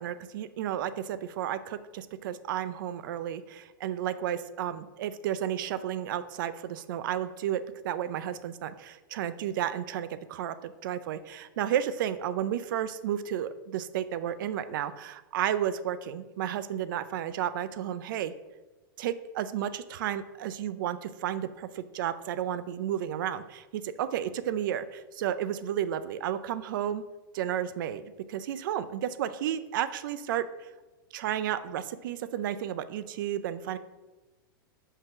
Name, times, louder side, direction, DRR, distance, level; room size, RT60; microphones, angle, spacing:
voice 1, 0.0-18.3 19.0-27.0 27.3-30.7 31.1-33.8, right 10 dB, 65° right, 13 dB, 0.4 m, -32 dB
5.5 x 3.7 x 5.8 m, 1.2 s
supercardioid pair, 145°, 12 cm